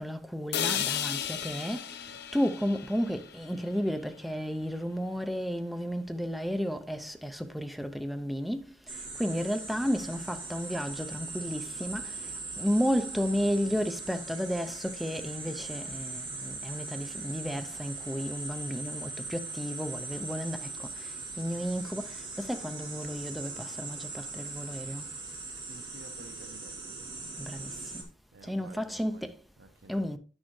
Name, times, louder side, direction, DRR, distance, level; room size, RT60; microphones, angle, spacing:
voice 1, 0.0-2.0 2.3-12.2 12.6-25.1 27.4-28.0 28.4-29.4 29.9-30.2, equal, ahead, 0.5 m, -33 dB
sound 1, 0.5-4.5, left 9 dB, 60° left, 0.7 m, -35 dB
sound 2, 8.9-28.0, right 3 dB, 25° right, 1.8 m, -40 dB
voice 2, 25.7-27.0 28.3-30.2, right 3 dB, 65° right, 0.8 m, -52 dB
9.8 x 6.3 x 3.1 m
head